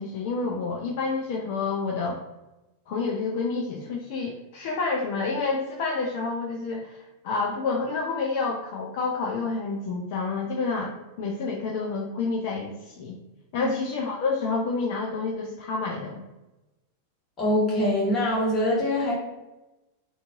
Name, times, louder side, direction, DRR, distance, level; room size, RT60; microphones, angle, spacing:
voice 1, 0.0-2.2 2.9-13.2 13.5-16.2, left 4 dB, 50° left, 0 dB, 0.3 m, -29 dB
voice 2, 17.4-19.1, left 1 dB, 25° left, -6 dB, 1.2 m, -23 dB
2.5 x 2.3 x 2.4 m, 1.0 s
figure-of-eight pair, 90°, 0 cm